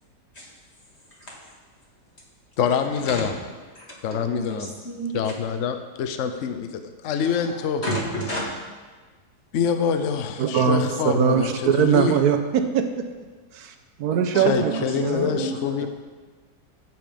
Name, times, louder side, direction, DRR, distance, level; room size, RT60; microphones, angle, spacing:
voice 1, 2.6-3.3 4.0-4.7 5.1-7.8 9.5-11.5 11.8-12.1 14.3-15.9, left 7 dB, 60° left, 8 dB, 0.8 m, -25 dB
voice 2, 3.8-5.2 7.2-7.5 7.8-8.5 14.3-15.7, right 1 dB, 35° left, -4 dB, 2.4 m, -31 dB
voice 3, 10.4-13.1 13.5-13.7 14.0-15.4 15.8-15.9, right 7 dB, 65° right, 7 dB, 1.2 m, -22 dB
15.0 x 5.6 x 5.2 m, 1.4 s
omnidirectional pair, 1.9 m